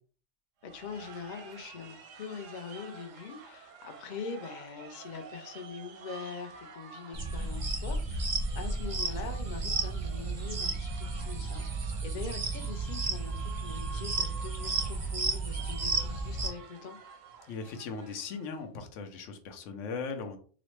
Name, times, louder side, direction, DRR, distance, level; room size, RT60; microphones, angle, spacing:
voice 1, 0.6-11.6 12.0-17.0, left 5 dB, 55° left, 6 dB, 0.5 m, -43 dB
sound 1, 0.6-18.6, right 5 dB, 90° right, 1.0 m, -50 dB
sound 2, 7.1-16.5, right 3 dB, 40° right, 0.5 m, -33 dB
voice 2, 17.5-20.4, left 4 dB, 80° left, 6 dB, 1.0 m, -38 dB
3.9 x 2.1 x 3.0 m, 0.42 s
omnidirectional pair, 1.3 m